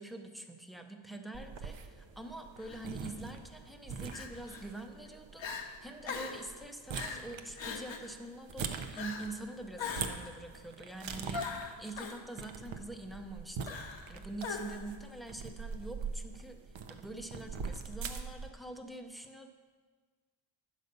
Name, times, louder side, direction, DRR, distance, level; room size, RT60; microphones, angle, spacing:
voice 1, 0.0-16.6 16.9-19.5, right 2 dB, ahead, 5 dB, 0.6 m, -45 dB
sound 1, 1.3-18.5, right 5 dB, 75° right, 0.8 m, -44 dB
Crying sobbing, 2.6-2.8 4.1-4.6 5.1-5.2 5.4-5.7 6.1-6.4 6.9-7.2 7.6-8.1 9.0-9.3 9.8-10.3 11.3-12.2 13.7-14.1 14.4-14.9, left 5 dB, 75° left, 1.0 m, -40 dB
9.7 x 5.3 x 6.6 m, 1.5 s
wide cardioid pair, 135°, 46 cm